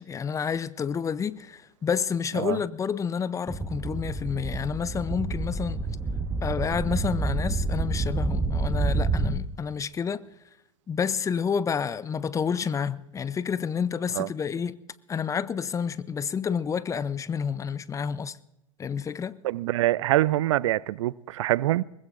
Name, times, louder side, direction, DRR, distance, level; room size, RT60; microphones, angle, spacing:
voice 1, 0.0-5.9 6.4-10.2 10.9-14.8 15.1-18.4 18.8-19.4, left 6 dB, 20° left, 0.6 m, -29 dB
sound 1, 3.5-9.4, right 3 dB, 15° right, 1.3 m, -28 dB
voice 2, 19.4-21.8, right 15 dB, 60° right, 0.4 m, -24 dB
22.5 x 20.0 x 2.6 m
figure-of-eight pair, 90°, 18 cm